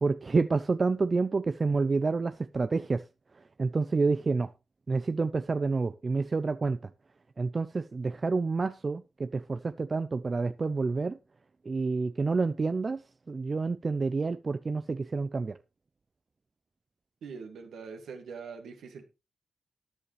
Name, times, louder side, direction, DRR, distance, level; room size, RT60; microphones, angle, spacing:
voice 1, 0.0-3.0 3.6-4.5 4.9-6.8 7.4-11.2 11.7-13.0 13.3-15.6, right 4 dB, 45° right, 0.5 m, -28 dB
voice 2, 17.2-19.1, right 5 dB, 80° right, 2.0 m, -43 dB
13.5 x 10.0 x 3.2 m
supercardioid pair, 40°, 0 cm